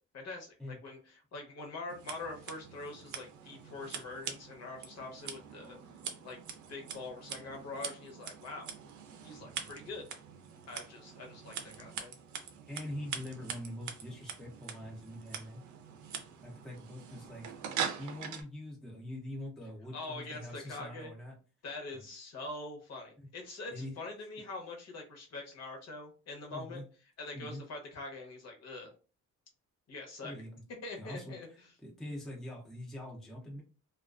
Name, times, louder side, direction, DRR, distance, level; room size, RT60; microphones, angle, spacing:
voice 1, 0.1-5.8 6.2-6.4 6.7-8.7 9.2-10.1 10.7-12.2 19.9-21.1 21.6-26.8 27.2-28.9 29.9-30.3 30.8-31.5, left 2 dB, 55° left, 1 dB, 0.8 m, -44 dB
Scissors, 1.9-18.4, right 7 dB, 70° right, 0.5 m, -43 dB
voice 2, 12.7-15.6 16.4-17.5 18.0-21.3 21.9-22.0 23.2-23.3 23.7-24.0 26.5-26.9 27.3-27.7 30.2-30.5 31.0-31.3 31.8-33.6, left 1 dB, ahead, -2 dB, 0.5 m, -44 dB
2.3 x 2.3 x 2.3 m, 0.35 s
cardioid pair, 160°, 31 cm